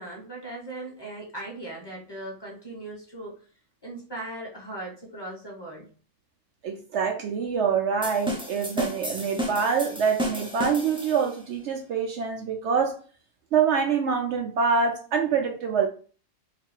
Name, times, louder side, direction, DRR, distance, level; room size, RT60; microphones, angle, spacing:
voice 1, 0.0-3.4 3.8-5.9, right 1 dB, 20° left, -3 dB, 1.4 m, -38 dB
voice 2, 6.6-12.9 13.5-15.9, right 6 dB, 70° right, 3 dB, 0.8 m, -25 dB
sound 1, 8.0-11.4, equal, 5° right, 0.6 m, -32 dB
3.0 x 2.6 x 4.4 m, 0.39 s
omnidirectional pair, 1.3 m